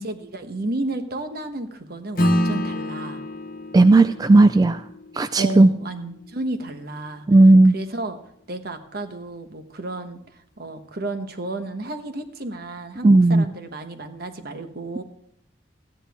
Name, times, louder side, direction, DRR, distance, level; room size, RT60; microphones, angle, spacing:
voice 1, 0.0-3.2 5.4-7.3 7.7-8.2 8.5-10.2 10.6-15.0, right 2 dB, 60° right, 7 dB, 1.2 m, -32 dB
Acoustic guitar / Strum, 2.2-6.9, equal, 55° left, 1.0 m, -28 dB
voice 2, 3.7-4.8 5.2-5.7 7.3-7.8 13.0-13.4, right 2 dB, 20° right, 10 dB, 0.3 m, -14 dB
14.5 x 10.0 x 3.5 m, 0.73 s
head